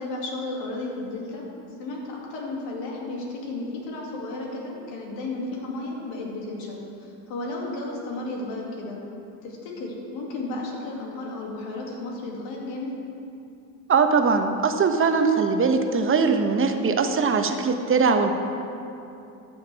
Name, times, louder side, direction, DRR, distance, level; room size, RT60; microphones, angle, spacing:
voice 1, 0.0-1.5 1.8-9.0 9.4-13.0, left 2 dB, 70° left, -2 dB, 2.4 m, -33 dB
voice 2, 13.9-18.3, right 5 dB, 30° right, 6 dB, 0.9 m, -21 dB
14.0 x 7.3 x 3.4 m, 2.7 s
supercardioid pair, 80°, 45 cm